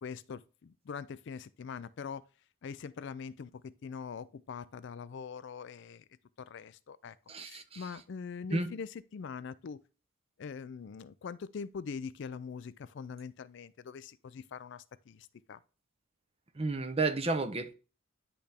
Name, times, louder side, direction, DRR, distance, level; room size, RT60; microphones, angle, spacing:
voice 1, 0.0-2.2 2.6-6.0 6.4-9.8 10.4-15.6, left 6 dB, 55° left, 0.4 m, -43 dB
voice 2, 7.3-7.8 8.5-8.7 16.6-17.7, right 3 dB, 30° right, 0.7 m, -32 dB
10.0 x 3.4 x 3.4 m
head